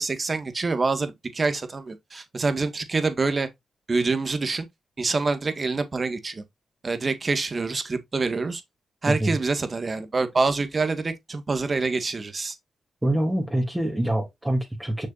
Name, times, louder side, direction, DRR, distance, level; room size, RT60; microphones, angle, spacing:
voice 1, 0.0-3.5 3.9-4.7 5.0-6.4 6.8-8.6 9.0-12.6, right 3 dB, 40° right, 1.8 m, -26 dB
voice 2, 13.0-15.1, right 1 dB, 15° right, 3.0 m, -25 dB
6.5 x 6.5 x 2.6 m
supercardioid pair, 55°, 0 cm